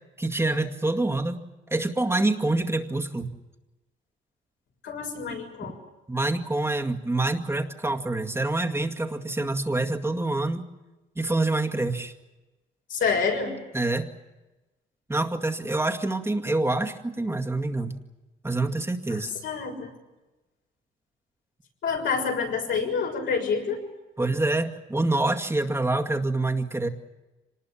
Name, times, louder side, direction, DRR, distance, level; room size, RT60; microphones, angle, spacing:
voice 1, 0.2-3.3 5.6-5.7 6.1-10.6 11.2-12.1 13.7-14.1 15.1-18.0 18.4-19.3 24.2-26.9, right 2 dB, 10° right, 4 dB, 2.1 m, -26 dB
voice 2, 4.8-5.7 12.9-13.6 19.1-19.9 21.8-23.8, left 5 dB, 75° left, 1 dB, 6.6 m, -27 dB
25.5 x 20.0 x 8.6 m, 1.1 s
cardioid pair, 90°, 20 cm